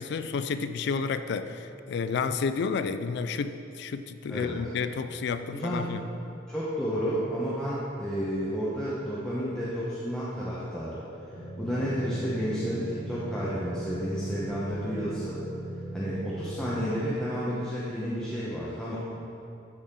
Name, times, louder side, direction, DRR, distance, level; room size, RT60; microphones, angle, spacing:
voice 1, 0.0-6.0, left 5 dB, 65° left, 11 dB, 0.3 m, -31 dB
voice 2, 5.5-5.9 6.5-11.0 11.6-15.4 15.9-19.0, equal, 5° left, -9 dB, 0.9 m, -31 dB
sound 1, 11.3-16.9, right 1 dB, 90° right, 1.8 m, -38 dB
12.0 x 4.2 x 3.7 m, 2.8 s
head